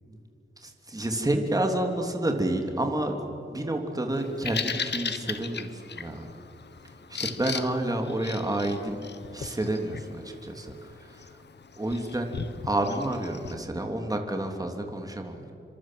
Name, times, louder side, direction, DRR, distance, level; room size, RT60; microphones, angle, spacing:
voice 1, 0.6-3.2 3.5-6.3 7.1-9.0 9.3-11.2 11.8-12.4 12.6-15.5, right 1 dB, 20° right, 3 dB, 3.2 m, -29 dB
Bird vocalization bird call bird song, 4.1-13.5, left 5 dB, 60° left, 1.4 m, -38 dB
28.0 x 26.0 x 7.7 m, 2.7 s
wide cardioid pair, 90°, 20 cm